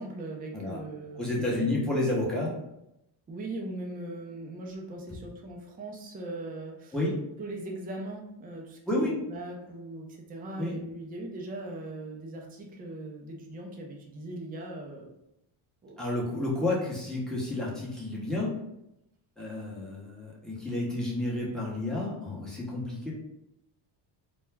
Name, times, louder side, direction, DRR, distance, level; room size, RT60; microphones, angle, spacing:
voice 1, 0.0-1.9 3.3-6.9 7.4-15.1 15.8-16.0, right 2 dB, 20° right, 0 dB, 0.4 m, -40 dB
voice 2, 1.2-2.6 6.9-7.2 8.9-9.2 10.6-10.8 16.0-18.6 19.4-23.1, left 2 dB, ahead, -5 dB, 0.8 m, -30 dB
2.3 x 2.0 x 3.2 m, 0.83 s
cardioid pair, 105°, 48 cm